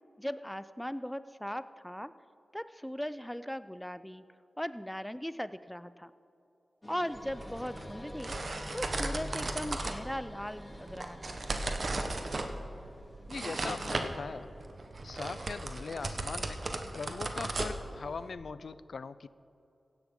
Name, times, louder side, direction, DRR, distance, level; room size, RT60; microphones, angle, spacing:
voice 1, 0.2-2.1 2.5-4.2 4.6-6.1 6.9-8.4 8.7-11.4, equal, 5° left, 14 dB, 0.5 m, -38 dB
sound 1, 6.8-14.2, left 1 dB, 25° left, 1.2 m, -49 dB
sound 2, 7.1-18.3, right 2 dB, 60° right, 1.1 m, -37 dB
voice 2, 13.3-14.5 15.0-16.6 16.9-19.3, left 4 dB, 75° left, 16 dB, 0.4 m, -40 dB
16.0 x 11.0 x 3.8 m, 2.8 s
cardioid pair, 45°, 0 cm